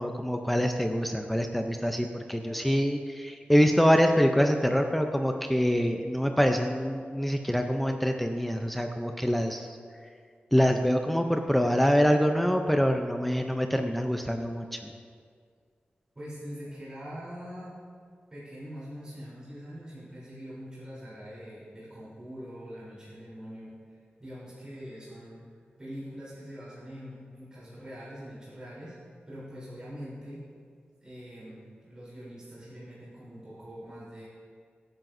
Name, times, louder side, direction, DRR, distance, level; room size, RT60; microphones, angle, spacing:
voice 1, 0.0-9.7 10.5-14.9, equal, 5° left, 4 dB, 0.5 m, -25 dB
voice 2, 2.4-2.7 16.2-17.8 18.3-23.8 24.2-25.5 25.8-29.0 29.3-30.4 31.0-34.3, equal, 25° right, -9 dB, 3.4 m, -43 dB
22.5 x 9.1 x 2.6 m, 2.1 s
wide cardioid pair, 155°, 4 cm